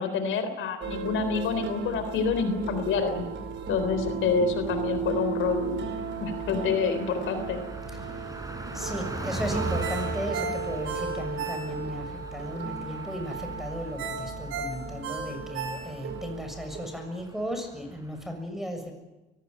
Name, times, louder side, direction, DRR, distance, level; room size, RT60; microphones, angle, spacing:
voice 1, 0.0-3.2 3.7-5.9 6.2-7.6, left 5 dB, 80° left, 9 dB, 3.6 m, -27 dB
sound 1, 0.8-17.6, right 5 dB, 70° right, 5.0 m, -36 dB
Car passing by, 2.7-3.3 3.7-3.8 4.1-18.3, right 2 dB, 15° right, 5.0 m, -40 dB
voice 2, 8.7-18.9, equal, ahead, 5 dB, 6.8 m, -35 dB
Ringtone, 9.8-12.1 12.4-12.5 14.0-16.2 16.6-16.7, right 4 dB, 90° right, 6.4 m, -35 dB
24.0 x 17.5 x 9.3 m, 1.1 s
cardioid pair, 90°, 20 cm